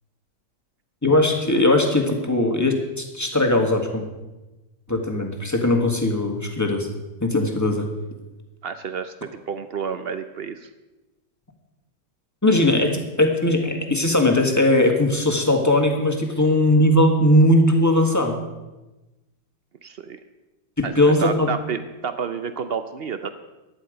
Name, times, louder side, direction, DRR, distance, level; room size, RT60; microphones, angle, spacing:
voice 1, 1.0-4.0 4.9-6.9 7.2-7.9 12.4-18.4 20.8-21.5, left 1 dB, 10° left, 2 dB, 1.5 m, -19 dB
voice 2, 8.6-10.7 19.8-20.2 20.8-20.9 21.2-23.3, right 6 dB, 75° right, 10 dB, 0.5 m, -30 dB
14.5 x 10.5 x 5.1 m, 1.1 s
omnidirectional pair, 1.9 m